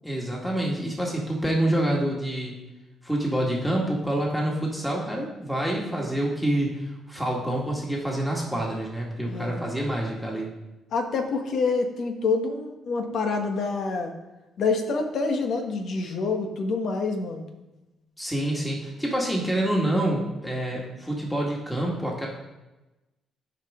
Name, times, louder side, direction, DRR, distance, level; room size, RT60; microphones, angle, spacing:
voice 1, 0.0-2.6 3.0-10.5 18.2-22.3, right 1 dB, 5° left, -3 dB, 2.0 m, -27 dB
voice 2, 9.2-9.6 10.9-14.1 14.6-17.5, left 4 dB, 65° left, 4 dB, 1.2 m, -27 dB
12.5 x 5.0 x 3.7 m, 1.0 s
cardioid pair, 90°, 0 cm